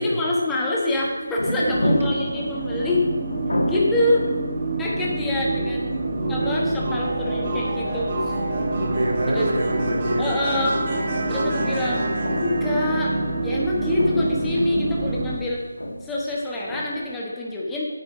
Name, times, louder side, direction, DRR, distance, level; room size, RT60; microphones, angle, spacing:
voice 1, 0.0-3.0 3.7-4.2 4.8-6.0 6.3-8.3 9.3-9.5 10.2-10.7 11.3-13.2 13.4-15.6 16.0-17.9, left 2 dB, 5° left, -5 dB, 1.2 m, -26 dB
sound 1, 0.9-17.1, left 1 dB, 70° left, 1.9 m, -33 dB
voice 2, 1.5-2.0 4.8-4.9 5.2-5.7 6.1-6.7 8.8-10.4, right 1 dB, 60° right, -1 dB, 2.6 m, -27 dB
sound 2, 1.6-15.4, right 2 dB, 30° right, 1.7 m, -26 dB
9.2 x 7.2 x 5.0 m, 1.2 s
figure-of-eight pair, 160°, 0 cm